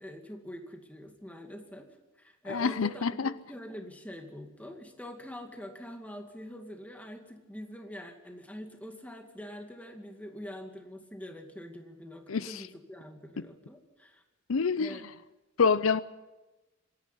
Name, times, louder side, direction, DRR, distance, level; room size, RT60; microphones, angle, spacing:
voice 1, 0.0-14.2 14.8-15.0, equal, 5° left, 4 dB, 2.3 m, -44 dB
voice 2, 2.5-3.3 12.3-12.7 13.4-13.5 14.5-15.0 15.6-16.0, left 5 dB, 75° left, 16 dB, 0.6 m, -27 dB
25.5 x 11.0 x 9.9 m, 1.1 s
head